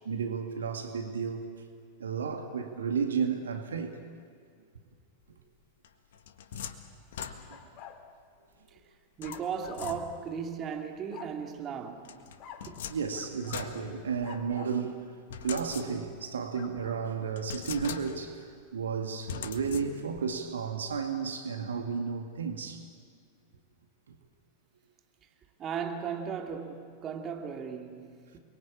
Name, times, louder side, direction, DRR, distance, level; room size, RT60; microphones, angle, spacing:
voice 1, 0.0-1.4 2.0-3.9 7.3-7.4 12.9-15.0 15.4-22.8, right 6 dB, 70° right, 2.0 m, -33 dB
sound 1, 5.8-7.8 9.2-10.4 12.0-14.6 15.3-16.3 16.8-16.9 17.4-18.4 19.3-20.3, left 8 dB, 60° left, 1.7 m, -42 dB
sound 2, 7.5-8.0 9.2-10.3 11.1-11.4 12.4-12.7 13.1-13.7 14.2-14.8 16.5-17.0, left 8 dB, 40° left, 2.4 m, -47 dB
voice 2, 9.2-12.2 12.7-12.8 25.6-28.4, right 7 dB, 30° right, 2.7 m, -36 dB
29.5 x 22.5 x 8.7 m
figure-of-eight pair, 90°, 0 cm